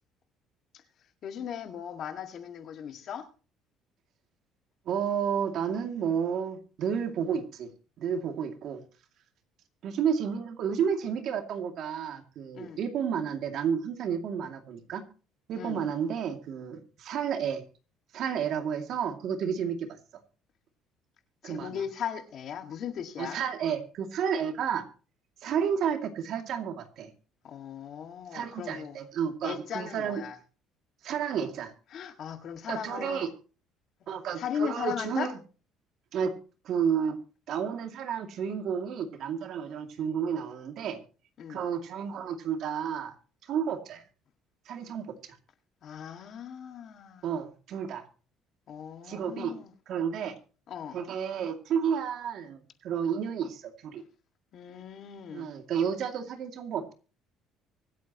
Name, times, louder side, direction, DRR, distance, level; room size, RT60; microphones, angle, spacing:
voice 1, 1.2-3.3 12.5-12.8 15.5-15.8 21.4-23.4 27.4-29.0 29.4-30.4 31.9-33.3 34.3-35.3 41.4-41.6 45.8-47.4 48.7-49.7 50.7-51.0 54.5-55.5, left 8 dB, 55° left, 2.0 m, -37 dB
voice 2, 4.9-7.7 8.0-8.8 9.8-15.0 15.5-17.6 18.1-20.0 21.4-21.8 23.2-24.9 25.4-27.1 28.3-30.2 31.0-31.7 32.7-33.3 34.1-35.3 36.1-36.3 36.6-37.2 37.5-41.0 41.5-43.1 43.4-44.0 44.7-45.4 47.2-48.0 49.1-49.6 49.9-50.4 50.9-54.0 55.3-56.9, right 7 dB, 60° right, 2.4 m, -31 dB
24.5 x 8.4 x 3.0 m
cardioid pair, 110°, 0 cm